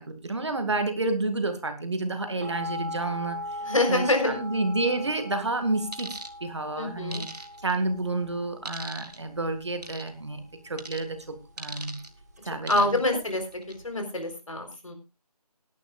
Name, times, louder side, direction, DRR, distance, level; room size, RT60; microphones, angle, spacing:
voice 1, 0.0-3.6 3.9-7.3 7.6-12.0 12.4-13.0, right 2 dB, 45° right, 8 dB, 2.0 m, -30 dB
sound 1, 2.4-13.9, equal, 25° right, 1.6 m, -40 dB
voice 2, 3.6-4.4 6.8-7.2 12.7-13.4 13.8-14.9, left 2 dB, 55° left, 5 dB, 4.1 m, -26 dB
sound 2, 5.9-6.3 7.1-7.8 8.7-9.2 9.8-10.1 10.8-11.0 11.6-12.1 12.7-13.1 13.5-13.7, right 2 dB, 80° right, 2.1 m, -39 dB
20.5 x 11.0 x 2.4 m, 0.27 s
figure-of-eight pair, 170°, 20 cm